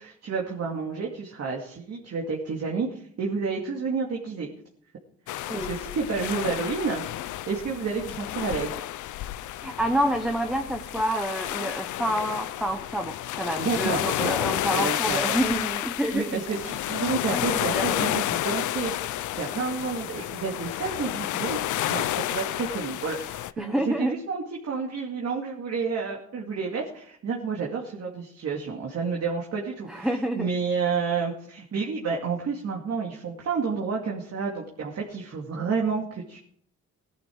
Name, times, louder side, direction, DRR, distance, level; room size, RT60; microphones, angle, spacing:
voice 1, 0.0-4.5 5.3-8.7 13.6-14.4 14.7-15.4 16.1-21.6 21.9-36.4, right 5 dB, 55° right, -2 dB, 2.5 m, -30 dB
sound 1, 5.3-23.5, left 14 dB, 75° left, 0.6 m, -31 dB
voice 2, 9.6-16.4 17.3-18.2 23.6-24.2 29.9-30.5, equal, ahead, 5 dB, 1.1 m, -28 dB
17.0 x 11.0 x 4.8 m, 0.64 s
cardioid pair, 90°, 30 cm